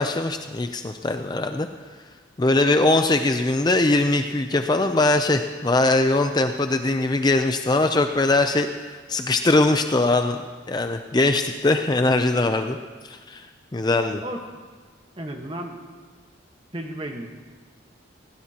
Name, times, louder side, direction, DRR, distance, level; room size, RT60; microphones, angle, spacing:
voice 1, 0.0-1.7 2.4-10.4 10.7-12.8 13.1-13.5 13.7-14.2, left 2 dB, 20° left, 6 dB, 0.4 m, -21 dB
voice 2, 15.2-15.8 16.7-17.3, right 1 dB, 25° right, 3 dB, 1.3 m, -33 dB
21.0 x 17.0 x 2.9 m, 1.5 s
head